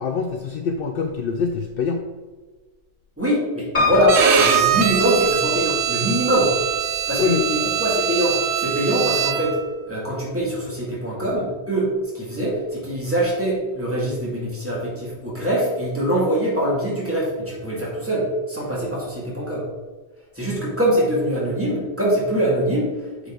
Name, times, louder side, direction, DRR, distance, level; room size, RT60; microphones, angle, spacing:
voice 1, 0.0-2.1 7.2-7.5, left 5 dB, 65° left, 5 dB, 0.7 m, -24 dB
voice 2, 3.2-6.6 7.1-19.7 20.3-23.3, right 1 dB, 10° right, -6 dB, 2.2 m, -23 dB
Piano, 3.7-5.7 6.3-7.1 7.4-7.5 7.7-7.8, left 3 dB, 45° left, 2.0 m, -26 dB
Bowed string instrument, 4.1-9.6, right 8 dB, 80° right, 1.0 m, -22 dB
8.0 x 4.9 x 3.8 m, 1.3 s
omnidirectional pair, 1.1 m